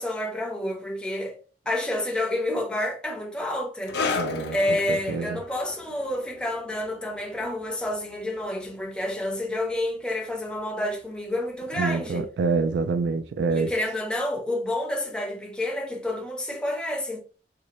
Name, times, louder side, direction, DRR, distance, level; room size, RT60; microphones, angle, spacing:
voice 1, 0.0-1.4 1.7-4.0 4.5-12.3 13.5-17.2, left 1 dB, 5° left, 0.5 m, -29 dB
sound 1, 3.9-10.9 11.1-11.4 12.1-12.2, left 4 dB, 65° left, 0.4 m, -36 dB
voice 2, 4.1-5.4 11.8-13.7, right 4 dB, 70° right, 0.3 m, -27 dB
2.8 x 2.1 x 2.4 m
head